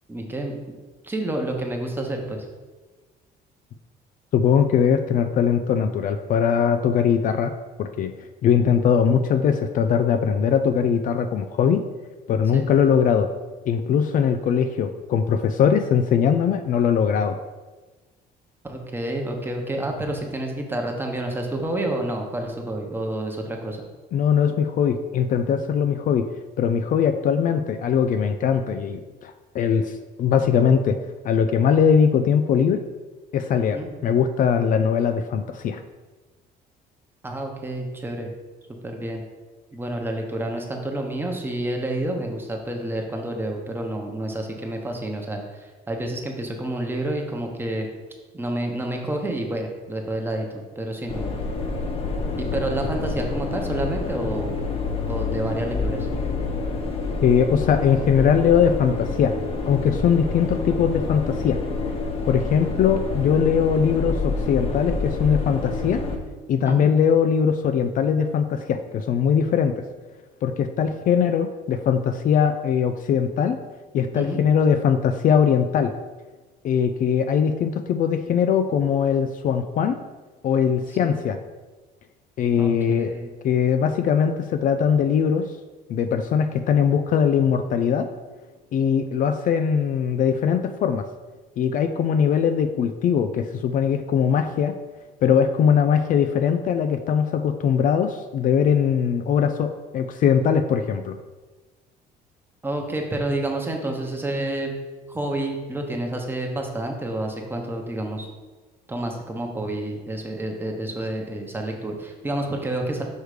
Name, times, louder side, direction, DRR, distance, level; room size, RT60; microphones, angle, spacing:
voice 1, 0.1-0.6 1.0-2.5 12.5-12.7 18.6-23.8 33.7-33.9 37.2-38.3 38.8-39.2 39.7-47.9 48.3-50.5 50.7-51.3 52.3-54.5 55.1-56.1 66.6-66.9 74.1-74.4 81.0-81.2 82.5-83.3 102.6-104.7 105.1-108.3 108.9-113.0, right 1 dB, 10° right, 2 dB, 1.0 m, -29 dB
voice 2, 4.3-7.5 7.8-8.1 8.4-11.8 12.3-13.3 13.7-17.4 24.1-26.3 26.6-31.0 31.2-32.8 33.3-35.8 57.2-59.3 59.7-61.6 62.3-66.0 66.5-69.8 70.4-73.6 73.9-75.9 76.6-80.0 80.4-81.4 82.4-83.2 83.4-85.5 85.9-88.1 88.7-91.1 91.6-94.8 95.2-101.2, left 7 dB, 50° left, 9 dB, 0.4 m, -21 dB
sound 1, 51.1-66.2, left 3 dB, 35° left, 0.8 m, -28 dB
6.4 x 3.2 x 4.9 m, 1.3 s
cardioid pair, 110°, 17 cm